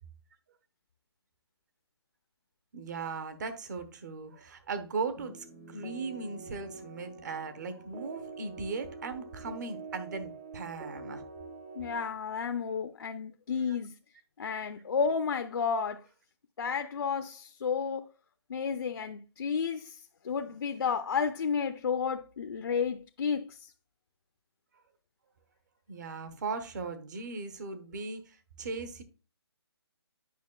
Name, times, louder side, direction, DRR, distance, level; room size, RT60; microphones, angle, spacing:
voice 1, 2.7-11.2 13.7-13.8 25.9-29.0, right 4 dB, 40° right, 1.0 m, -38 dB
sound 1, 5.2-12.0, right 4 dB, 15° right, 0.5 m, -46 dB
voice 2, 11.8-13.9 14.4-16.0 16.6-18.1 18.5-20.0 20.2-23.6, left 6 dB, 60° left, 0.6 m, -31 dB
9.3 x 5.7 x 2.3 m
hypercardioid pair, 165°, 14 cm